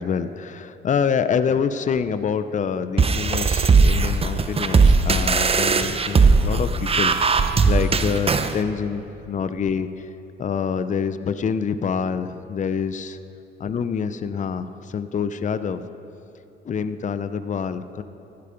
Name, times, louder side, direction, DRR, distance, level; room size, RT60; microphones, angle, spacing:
voice 1, 0.0-10.1 10.4-13.2 13.6-15.8 16.7-18.0, left 6 dB, 40° left, 12 dB, 0.6 m, -26 dB
sound 1, 3.0-8.5, right 4 dB, 30° right, 0.7 m, -18 dB
15.0 x 11.5 x 5.1 m, 2.9 s
cardioid pair, 90°, 20 cm